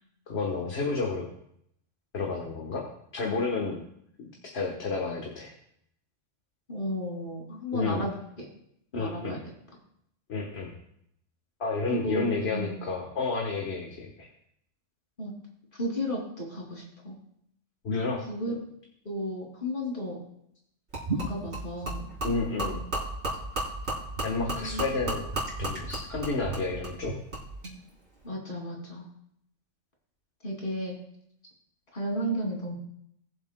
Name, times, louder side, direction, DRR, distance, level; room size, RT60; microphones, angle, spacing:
voice 1, 0.3-1.2 2.1-2.8 3.1-3.8 4.5-5.5 7.7-8.1 8.9-9.4 10.3-10.7 11.6-14.3 17.8-18.2 22.2-22.8 24.2-25.3 25.6-27.1, left 3 dB, 60° left, 0 dB, 1.5 m, -30 dB
voice 2, 6.7-8.2 8.9-9.4 11.9-12.8 15.2-15.3 15.7-17.1 18.3-18.6 19.0-20.2 21.1-22.1 24.5-24.8 28.2-29.1 30.4-31.0 31.9-32.8, equal, 45° left, -2 dB, 2.9 m, -33 dB
Gurgling / Liquid, 20.9-27.8, right 2 dB, 65° right, 3.8 m, -34 dB
20.5 x 7.4 x 2.2 m, 0.73 s
omnidirectional pair, 1.3 m